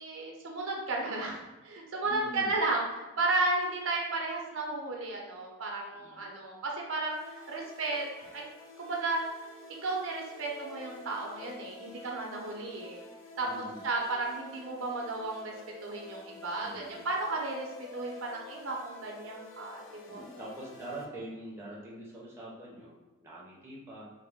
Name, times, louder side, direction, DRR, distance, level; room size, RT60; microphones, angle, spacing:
voice 1, 0.0-8.1 8.3-8.4 8.8-9.3 9.8-13.0 13.4-13.5 13.8-15.5 15.8-17.7 17.9-19.8 20.1-20.4, right 2 dB, 80° right, -1 dB, 0.6 m, -33 dB
voice 2, 2.0-2.5 5.9-6.2 13.4-13.9 16.6-17.1 20.1-24.1, right 1 dB, 15° right, -5 dB, 0.6 m, -44 dB
sound 1, 7.1-21.0, left 2 dB, 75° left, 0.5 m, -50 dB
3.1 x 2.1 x 3.5 m, 1.1 s
head